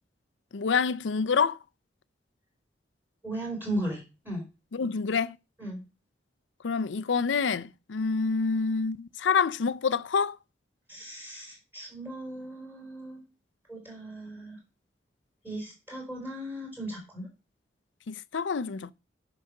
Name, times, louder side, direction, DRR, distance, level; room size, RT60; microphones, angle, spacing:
voice 1, 0.5-1.6 4.7-5.4 6.6-10.4 18.1-18.9, left 5 dB, 90° left, 0.5 m, -27 dB
voice 2, 3.2-4.4 5.6-5.8 10.9-13.2 13.7-14.6 15.4-17.3, right 1 dB, 10° right, 4.1 m, -37 dB
9.4 x 5.0 x 6.5 m
head